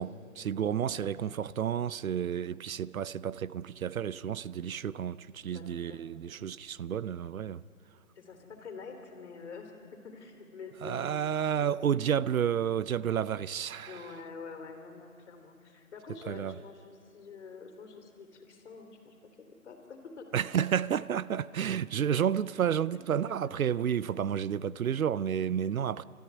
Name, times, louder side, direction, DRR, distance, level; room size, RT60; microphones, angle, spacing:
voice 1, 0.0-7.6 10.8-14.1 16.3-16.6 20.3-26.0, right 8 dB, 70° right, 0.6 m, -31 dB
voice 2, 5.5-6.1 8.2-11.1 11.6-11.8 13.9-20.3 20.5-20.6, left 5 dB, 50° left, 3.5 m, -47 dB
28.0 x 14.0 x 9.6 m
hypercardioid pair, 155°, 43 cm